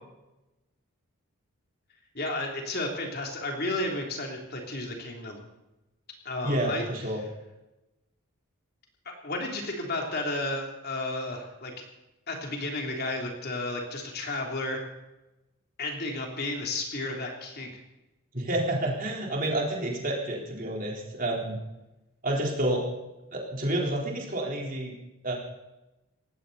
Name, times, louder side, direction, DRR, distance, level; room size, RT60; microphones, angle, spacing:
voice 1, 2.1-5.4 6.2-6.8 9.2-11.7 12.3-14.8 15.8-17.7, left 2 dB, 45° left, 1 dB, 3.3 m, -32 dB
voice 2, 6.4-7.2 18.3-21.6 22.2-22.8 23.3-24.9 25.2-25.3, right 1 dB, 40° right, -1 dB, 4.0 m, -29 dB
19.0 x 16.0 x 4.2 m, 0.99 s
head